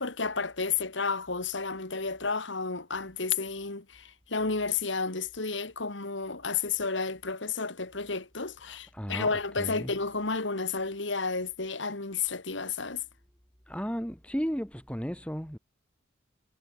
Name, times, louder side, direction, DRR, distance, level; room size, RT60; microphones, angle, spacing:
voice 1, 0.0-13.0, left 4 dB, 75° left, 2.4 m, -31 dB
voice 2, 8.7-9.3 9.6-9.9 13.7-15.6, equal, 5° left, 4.6 m, -34 dB
head